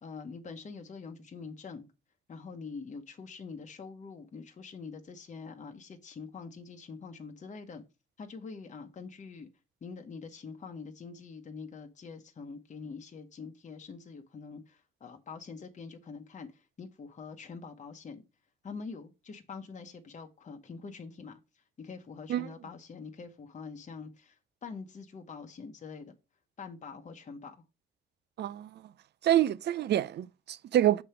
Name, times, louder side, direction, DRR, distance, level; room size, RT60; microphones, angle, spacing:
voice 1, 0.0-1.9 2.3-7.8 8.2-9.5 9.8-18.2 18.6-21.4 21.8-26.1 26.6-27.5, left 5 dB, 35° left, 1.0 m, -45 dB
voice 2, 28.4-28.7 29.2-31.0, right 12 dB, 60° right, 0.5 m, -27 dB
7.0 x 3.4 x 5.7 m
cardioid pair, 90°, 20 cm